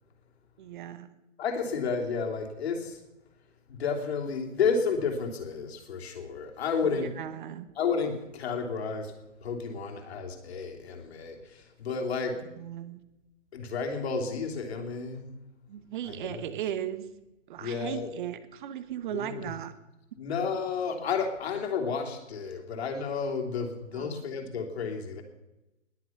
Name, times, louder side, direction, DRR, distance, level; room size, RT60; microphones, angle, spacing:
voice 1, 0.6-1.1 6.9-7.7 12.6-13.0 15.7-17.1 17.5-19.7 23.9-24.2, right 11 dB, 40° right, 13 dB, 1.2 m, -37 dB
voice 2, 1.4-3.0 3.7-7.1 7.8-9.1 9.4-12.4 13.5-15.3 16.1-16.4 17.6-18.1 19.1-19.5 20.2-25.2, left 5 dB, 55° left, 3 dB, 3.2 m, -31 dB
20.5 x 8.2 x 5.9 m, 0.96 s
hypercardioid pair, 140°, 38 cm